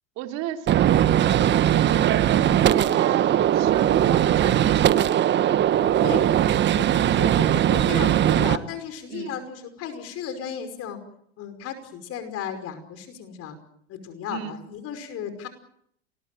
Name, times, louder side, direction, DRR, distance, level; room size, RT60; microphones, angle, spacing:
voice 1, 0.2-1.2 1.8-5.0 9.1-9.3 14.3-14.6, right 12 dB, 55° right, 5 dB, 3.1 m, -34 dB
Gunshot gunfire, 0.7-8.6, right 11 dB, 30° right, 1.3 m, -20 dB
voice 2, 6.8-11.0 11.4-13.6 13.9-15.5, left 8 dB, 45° left, 9 dB, 5.5 m, -34 dB
29.5 x 21.5 x 7.7 m, 0.71 s
hypercardioid pair, 100°, 34 cm